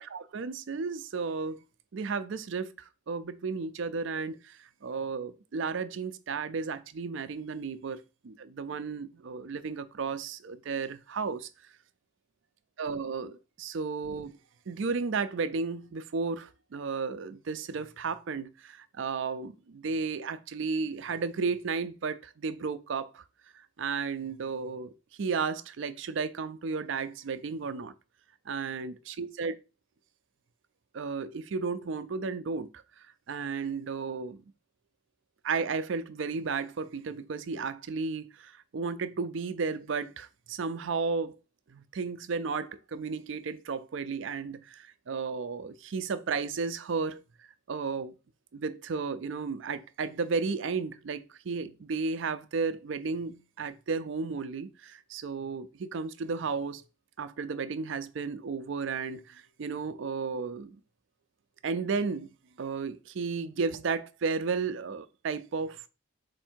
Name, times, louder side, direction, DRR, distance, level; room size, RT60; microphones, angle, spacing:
voice 1, 0.0-1.6 1.9-11.5 12.8-14.4 14.7-23.2 23.5-24.9 25.2-27.9 28.5-29.5 30.9-34.4 35.4-41.4 41.7-48.1 48.5-56.8 57.2-60.8 61.6-62.3 62.6-65.9, right 4 dB, 65° right, 0.4 m, -33 dB
4.5 x 2.6 x 4.4 m
head